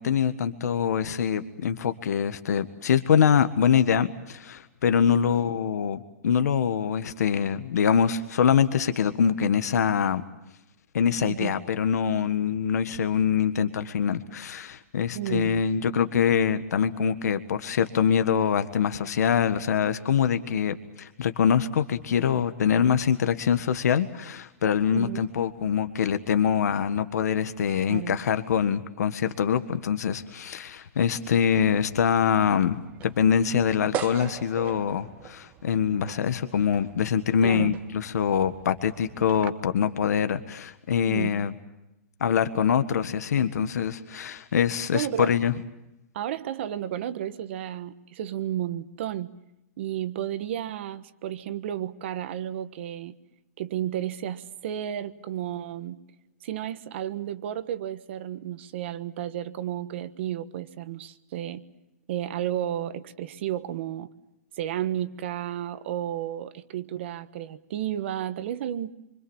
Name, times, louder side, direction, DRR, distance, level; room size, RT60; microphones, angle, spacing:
voice 1, 0.0-10.2 10.9-41.5 42.2-45.5, left 7 dB, 80° left, 9 dB, 1.6 m, -24 dB
voice 2, 15.1-15.5 24.9-25.3 27.9-28.1 37.4-37.7 41.1-41.3 44.9-45.3 46.1-49.3 49.8-53.2 53.6-56.0 56.4-61.6 62.1-64.1 64.5-68.9, right 11 dB, 45° right, 12 dB, 1.3 m, -32 dB
sound 1, 31.5-39.5, right 10 dB, 20° right, 1.0 m, -41 dB
27.5 x 25.0 x 7.3 m, 0.92 s
hypercardioid pair, 170°, 9 cm